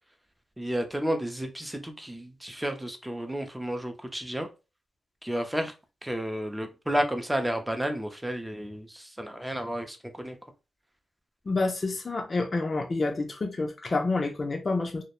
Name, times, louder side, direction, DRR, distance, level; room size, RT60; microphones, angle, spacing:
voice 1, 0.6-4.5 5.2-5.7 6.0-10.4, equal, 10° right, 0.5 m, -31 dB
voice 2, 11.5-15.0, left 3 dB, 40° left, 0.4 m, -28 dB
2.3 x 2.1 x 2.9 m
cardioid pair, 65°, 0 cm